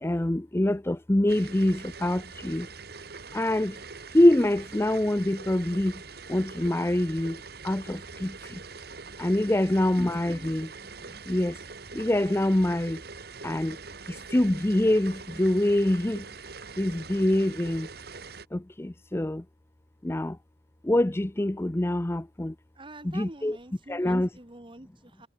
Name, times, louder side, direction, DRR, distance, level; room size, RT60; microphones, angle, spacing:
voice 1, 0.0-2.7 3.3-3.8 4.1-6.0 6.3-7.4 7.6-8.6 9.2-10.7 11.3-11.6 11.9-13.0 13.4-13.8 14.1-16.2 16.8-17.9 18.5-19.4 20.0-20.4 20.8-22.5 23.0-23.6 23.9-24.3, left 1 dB, 15° left, 0.5 m, -25 dB
sound 1, 1.3-18.5, right 4 dB, 60° right, 2.5 m, -43 dB
voice 2, 9.5-9.9 10.3-10.6 22.8-25.3, right 1 dB, 30° right, 2.1 m, -46 dB
head